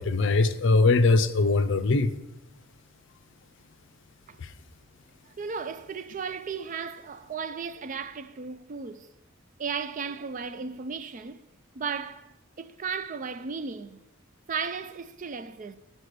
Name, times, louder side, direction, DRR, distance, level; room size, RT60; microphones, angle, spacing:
voice 1, 0.0-2.1, left 3 dB, 65° left, 0.5 m, -21 dB
voice 2, 5.3-9.1 9.6-11.4 11.7-14.0 14.5-15.7, right 5 dB, 40° right, 0.4 m, -35 dB
9.3 x 4.3 x 6.6 m
head